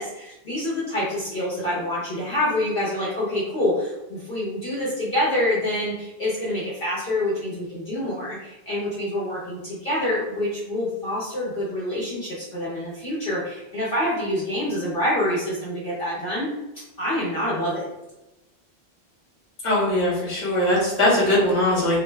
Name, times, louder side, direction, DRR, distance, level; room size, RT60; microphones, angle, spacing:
voice 1, 0.0-16.5 17.0-17.9, left 1 dB, 55° left, -8 dB, 0.9 m, -26 dB
voice 2, 19.6-22.0, left 1 dB, 30° left, -6 dB, 1.1 m, -20 dB
2.5 x 2.1 x 3.2 m, 0.97 s
omnidirectional pair, 1.1 m